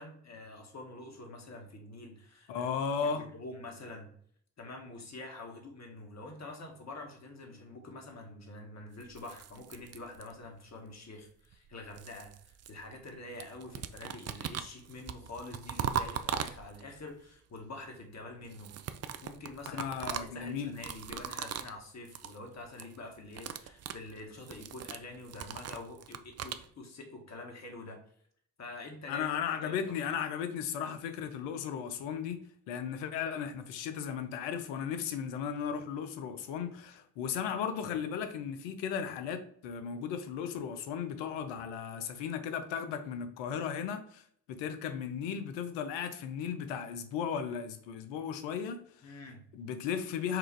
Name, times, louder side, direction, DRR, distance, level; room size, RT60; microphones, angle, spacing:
voice 1, 0.0-2.7 3.0-4.1 4.6-18.7 19.2-28.0 28.6-29.3 29.6-30.0 49.0-49.4, left 2 dB, 40° left, 1.4 m, -46 dB
voice 2, 2.5-3.3 19.7-20.7 29.1-32.4 32.7-49.2 49.5-50.4, left 7 dB, 75° left, 0.7 m, -36 dB
sound 1, 9.0-10.6 11.5-13.1 13.4-17.0 18.4-21.8 22.0-22.4 22.6-23.0 23.2-26.7, right 8 dB, 35° right, 0.4 m, -40 dB
4.6 x 2.5 x 4.5 m
hypercardioid pair, 45°, 43 cm